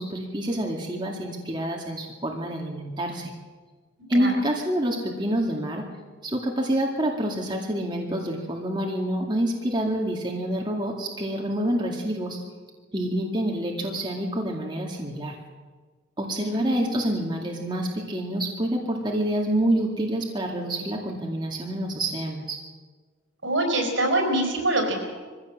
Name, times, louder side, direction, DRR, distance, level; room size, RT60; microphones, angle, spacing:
voice 1, 0.0-3.3 4.1-5.8 6.2-12.4 12.9-15.4 16.2-22.6, right 1 dB, 25° right, 0 dB, 2.2 m, -27 dB
voice 2, 16.5-17.1 23.4-25.1, right 1 dB, 75° right, 3 dB, 5.0 m, -25 dB
22.0 x 16.0 x 7.5 m, 1.4 s
head